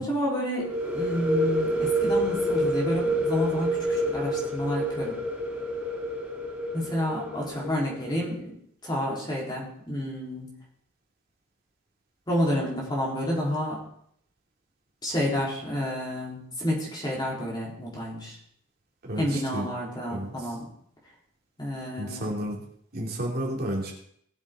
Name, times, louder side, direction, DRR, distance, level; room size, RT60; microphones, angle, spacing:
voice 1, 0.0-5.2 6.7-8.5 8.8-10.5 12.3-13.8 15.0-18.4 19.2-20.7 21.6-22.3, equal, 20° left, -4 dB, 3.9 m, -30 dB
sound 1, 0.6-8.2, equal, 5° right, 2.9 m, -28 dB
voice 2, 19.0-19.7 20.1-20.3 22.0-22.6 22.9-23.9, right 1 dB, 50° right, -1 dB, 3.0 m, -31 dB
19.5 x 7.3 x 3.8 m, 0.67 s
head